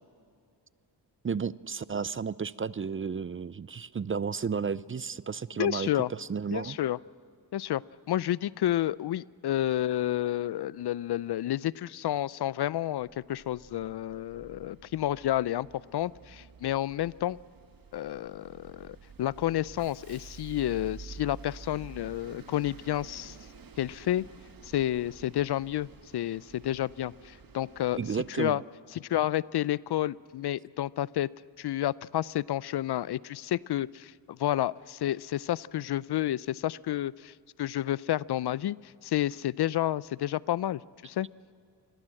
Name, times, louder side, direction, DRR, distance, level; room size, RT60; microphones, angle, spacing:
voice 1, 1.2-6.8 27.9-28.6, right 6 dB, 30° right, 19 dB, 0.5 m, -33 dB
voice 2, 5.6-6.1 6.5-7.0 7.5-15.7 15.9-17.4 17.9-23.4 23.8-24.3 24.6-25.9 26.1-28.0 28.3-28.6 28.9-31.3 31.6-41.3, left 13 dB, 65° left, 21 dB, 0.5 m, -30 dB
Bus, 13.0-28.3, right 5 dB, 50° right, 1.5 m, -50 dB
26.5 x 21.0 x 7.7 m, 2.3 s
cardioid pair, 65°, 44 cm